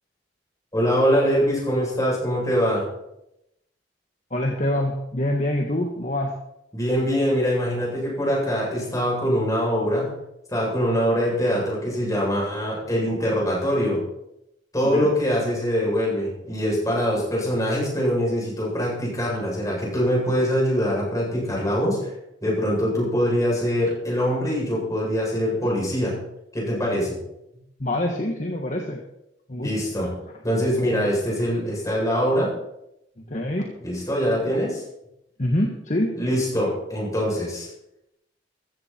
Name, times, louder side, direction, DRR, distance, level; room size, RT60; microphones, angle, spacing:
voice 1, 0.7-2.8 6.7-10.1 10.5-14.0 14.7-22.1 22.4-26.1 26.5-27.2 29.6-30.1 30.4-32.5 33.8-34.8 36.2-37.7, equal, 20° left, -4 dB, 7.7 m, -23 dB
voice 2, 4.3-6.3 14.8-15.1 27.8-29.0 29.5-29.7 33.2-33.8 35.4-36.2, left 1 dB, 40° left, 2 dB, 1.6 m, -25 dB
15.5 x 14.5 x 4.5 m, 0.84 s
head